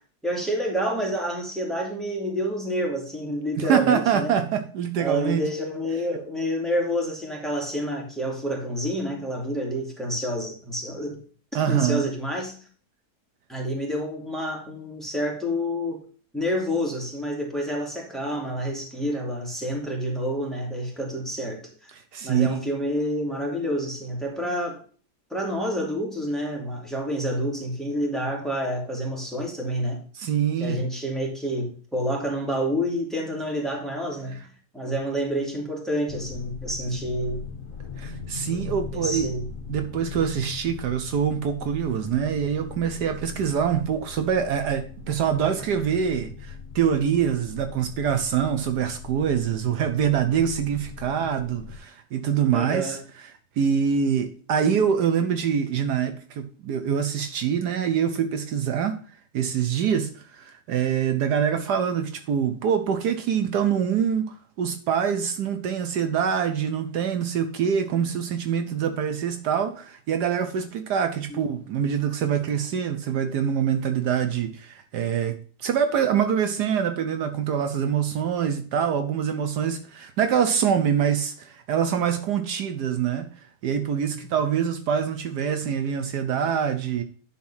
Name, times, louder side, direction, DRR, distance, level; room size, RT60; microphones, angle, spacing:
voice 1, 0.2-4.3 5.0-11.2 11.7-12.6 13.5-16.0 16.3-21.9 22.2-24.8 25.3-30.0 30.6-34.5 34.7-37.5 38.5-38.6 38.9-39.5 52.5-53.0 71.3-71.4, equal, ahead, 2.4 m, -28 dB
voice 2, 3.6-5.4 11.5-12.1 22.1-22.6 30.1-30.8 38.0-39.3 39.7-53.0 53.6-59.0 59.3-83.3 83.6-87.0, right 8 dB, 75° right, 1.4 m, -25 dB
sound 1, 36.1-51.8, left 6 dB, 50° left, 1.6 m, -40 dB
10.5 x 4.1 x 5.6 m
omnidirectional pair, 1.8 m